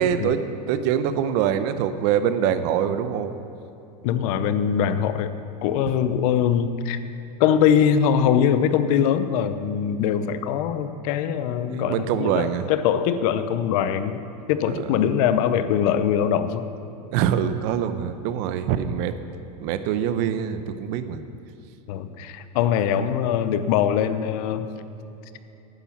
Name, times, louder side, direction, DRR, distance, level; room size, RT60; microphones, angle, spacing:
voice 1, 0.0-3.3 11.7-12.7 14.7-15.0 17.1-19.2 19.6-21.2, right 9 dB, 55° right, 11 dB, 0.8 m, -24 dB
voice 2, 4.0-5.3 5.6-7.0 7.4-14.2 14.5-16.6 21.9-24.7, left 8 dB, 60° left, 12 dB, 0.7 m, -22 dB
11.5 x 9.9 x 6.0 m, 2.8 s
supercardioid pair, 130°, 21 cm